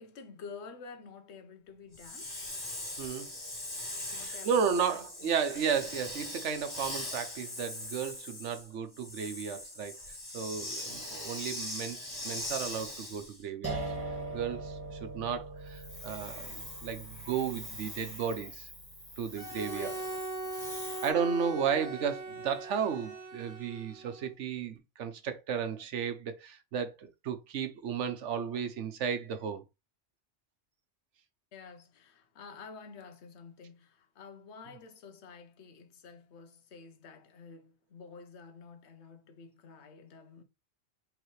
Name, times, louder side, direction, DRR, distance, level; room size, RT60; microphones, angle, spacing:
voice 1, 0.0-2.4 4.1-5.3 19.6-20.0 31.5-40.4, left 5 dB, 65° left, 1.1 m, -50 dB
Hiss, 1.9-13.4 15.7-21.1, left 1 dB, 30° left, 2.2 m, -41 dB
voice 2, 3.0-3.3 4.2-9.9 10.3-13.8 14.3-18.7 19.2-20.0 21.0-29.6, right 7 dB, 75° right, 1.1 m, -34 dB
sound 1, 13.6-20.6, right 2 dB, 10° right, 1.4 m, -42 dB
Bowed string instrument, 19.3-24.3, right 2 dB, 30° right, 0.9 m, -40 dB
4.9 x 3.2 x 3.1 m
omnidirectional pair, 1.2 m